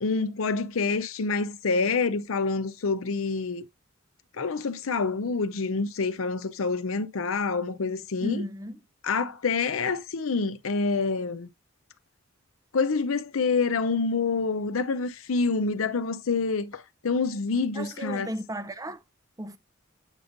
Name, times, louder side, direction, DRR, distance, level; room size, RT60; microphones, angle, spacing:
voice 1, 0.0-3.6 4.4-8.4 9.0-11.5 12.7-18.3, left 4 dB, 75° left, 0.6 m, -27 dB
voice 2, 8.2-8.8 17.7-19.0 19.4-19.6, equal, 15° right, 0.5 m, -34 dB
8.1 x 5.2 x 2.6 m
head